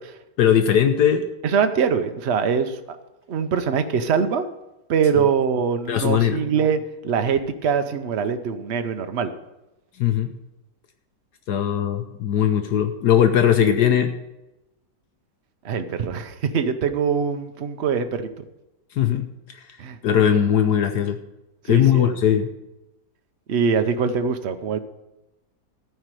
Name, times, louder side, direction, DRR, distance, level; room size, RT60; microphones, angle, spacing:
voice 1, 0.4-1.3 5.9-6.4 10.0-10.3 11.5-14.1 19.0-19.3 20.0-21.2 21.7-22.5, left 9 dB, 70° left, 8 dB, 1.3 m, -19 dB
voice 2, 1.4-3.0 3.3-4.4 4.9-9.3 13.6-13.7 15.6-18.3 19.8-20.2 21.7-22.2 23.5-24.8, right 6 dB, 50° right, 8 dB, 0.8 m, -23 dB
14.0 x 4.8 x 9.1 m, 0.98 s
omnidirectional pair, 1.9 m